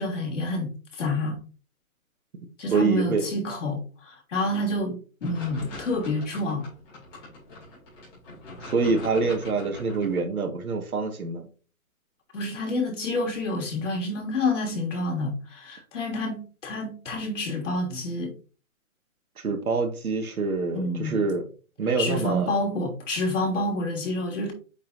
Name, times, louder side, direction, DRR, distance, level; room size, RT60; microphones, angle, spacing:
voice 1, 0.0-1.4 2.6-6.7 12.3-18.3 20.7-21.2 22.0-24.5, left 2 dB, 60° left, 3.1 m, -28 dB
voice 2, 2.7-3.3 8.6-11.5 19.4-21.4 21.8-22.5, right 4 dB, 85° right, 1.9 m, -26 dB
sound 1, 5.2-10.2, left 2 dB, 15° left, 2.5 m, -43 dB
8.4 x 4.2 x 2.7 m
hypercardioid pair, 180°, 42 cm